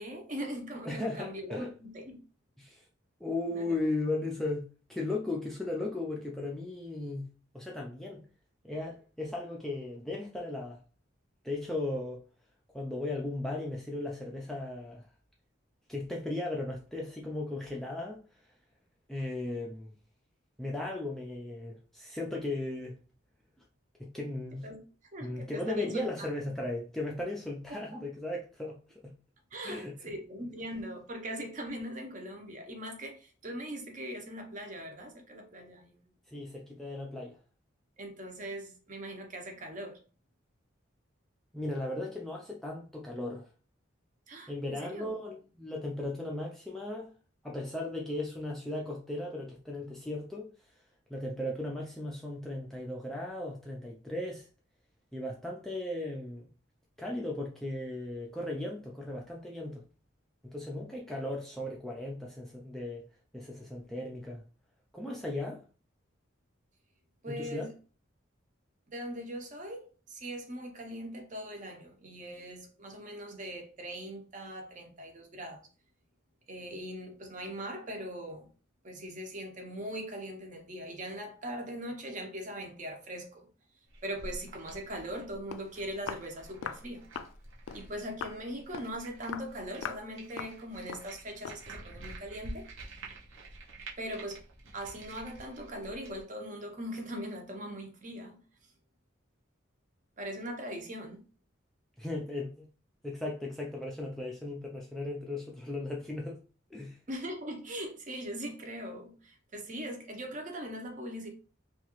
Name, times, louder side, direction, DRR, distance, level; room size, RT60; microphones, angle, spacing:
voice 1, 0.0-2.2 3.5-3.8 24.6-24.8 25.1-26.3 27.7-28.0 29.5-36.0 38.0-40.0 44.3-45.1 67.2-67.7 68.9-75.7 76.5-78.5 78.8-83.5 84.0-87.0 87.7-92.7 94.0-94.4 94.7-98.4 100.2-101.2 107.1-111.3, equal, 40° right, 0.6 m, -41 dB
voice 2, 0.9-1.7 2.6-2.8 3.2-7.2 7.5-8.2 8.6-10.8 11.4-12.2 12.7-15.0 15.9-18.2 19.1-19.9 20.6-23.0 24.0-24.7 25.2-28.8 29.0-29.1 29.6-29.9 36.3-37.4 41.5-43.5 44.5-47.1 47.4-50.5 51.1-54.5 55.1-56.5 57.0-59.8 60.4-63.0 63.3-64.4 64.9-65.6 67.3-67.7 102.0-102.7 103.0-106.4 106.7-107.0, left 2 dB, ahead, 0.4 m, -36 dB
sound 1, 83.9-96.2, right 2 dB, 80° right, 0.7 m, -49 dB
Walk footsteps, 85.2-85.3 85.5-85.7 86.1-86.3 86.6-86.8 87.2-87.4 87.7-87.9 88.2-88.4 88.7-89.0 89.3-89.5 89.8-90.1 90.4-90.6 90.9-91.1 91.4-91.7, left 7 dB, 80° left, 0.3 m, -40 dB
2.9 x 2.3 x 2.9 m
head